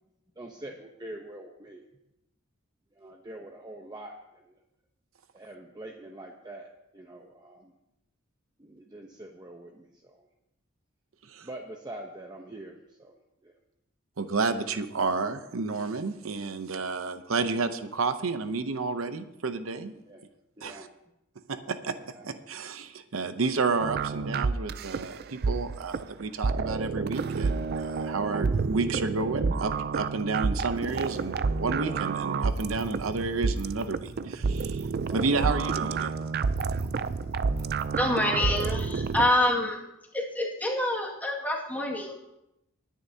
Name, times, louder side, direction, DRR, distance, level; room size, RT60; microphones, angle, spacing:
voice 1, 0.4-1.9 2.9-4.6 5.3-7.7 8.6-10.3 11.4-13.6 16.7-16.9 19.9-20.2 20.6-20.9 22.0-22.2 28.0-28.7 35.1-35.3 37.8-37.9, right 1 dB, 20° right, 1 dB, 0.9 m, -45 dB
voice 2, 14.2-19.9 20.6-20.9 21.5-21.9 22.2-34.8 35.1-36.1, right 4 dB, 85° right, 10 dB, 0.8 m, -31 dB
sound 1, 23.8-39.3, right 4 dB, 50° right, 0.4 m, -29 dB
voice 3, 37.9-39.8 40.1-42.1, left 1 dB, 10° left, -2 dB, 2.1 m, -27 dB
20.5 x 10.0 x 2.8 m, 0.88 s
head